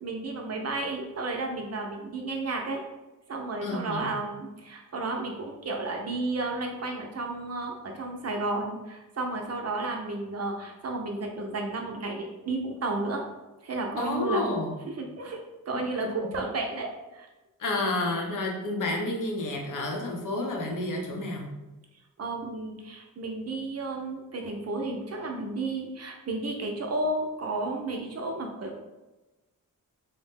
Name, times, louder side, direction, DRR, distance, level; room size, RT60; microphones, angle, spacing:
voice 1, 0.0-2.8 3.3-13.2 13.6-14.4 15.0-17.3 22.2-28.9, right 2 dB, 45° right, 2 dB, 0.5 m, -32 dB
voice 2, 3.6-4.1 14.0-14.7 15.7-16.3 17.6-21.5, left 2 dB, 65° left, 0 dB, 0.7 m, -30 dB
2.7 x 2.1 x 3.4 m, 1.1 s
cardioid pair, 85°, 34 cm